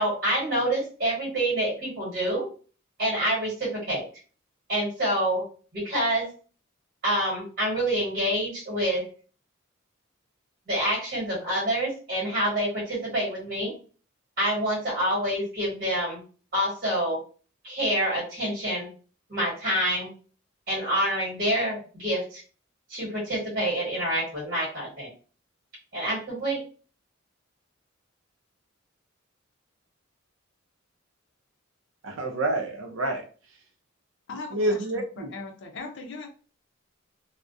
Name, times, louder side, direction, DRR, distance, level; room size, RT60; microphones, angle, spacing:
voice 1, 0.0-2.5 3.0-4.0 4.7-5.4 5.7-6.3 7.0-9.0 10.7-13.7 14.4-16.2 16.5-17.2 17.6-18.9 19.3-20.1 20.7-22.4 22.9-25.1 25.9-26.6, right 1 dB, 45° right, 1.3 m, -27 dB
voice 2, 32.0-33.2 34.5-35.3, right 1 dB, 70° right, 0.5 m, -28 dB
voice 3, 34.3-36.3, left 3 dB, 60° left, 0.5 m, -39 dB
2.3 x 2.1 x 2.5 m
head